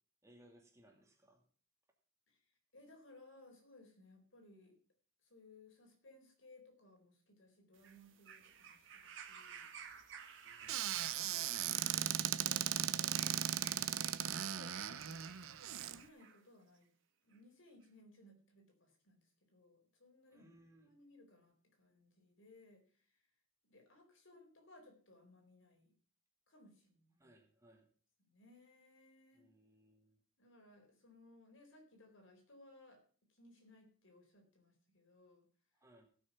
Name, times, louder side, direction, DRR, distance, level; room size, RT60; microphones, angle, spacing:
voice 1, 0.2-1.4 10.4-11.1 20.3-20.9 27.2-27.9 29.3-30.2 35.8-36.1, right 1 dB, 15° right, 2 dB, 2.2 m, -65 dB
voice 2, 2.7-4.8 5.3-9.7 10.8-13.4 14.4-15.2 15.8-16.9 17.2-19.2 19.5-20.5 20.8-22.8 23.6-25.9 26.5-27.3 28.2-29.5 30.4-33.0 33.3-35.5, left 2 dB, 65° left, 3 dB, 4.2 m, -63 dB
sound 1, 7.7-16.4 17.3-17.4, right 7 dB, 60° right, 1.7 m, -55 dB
Squeak / Cupboard open or close, 10.7-16.0, right 10 dB, 85° right, 0.7 m, -37 dB
17.0 x 6.4 x 5.8 m, 0.43 s
head